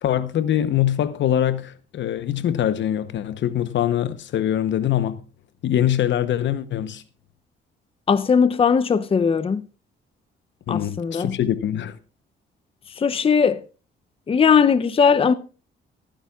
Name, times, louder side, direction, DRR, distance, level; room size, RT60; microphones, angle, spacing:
voice 1, 0.0-5.2 5.6-7.0 10.7-12.0, left 11 dB, 70° left, 0.9 m, -23 dB
voice 2, 8.1-9.7 10.7-11.4 13.0-13.6 14.3-15.3, left 6 dB, 30° left, 0.6 m, -19 dB
19.0 x 10.0 x 2.4 m
cardioid pair, 90°, 20 cm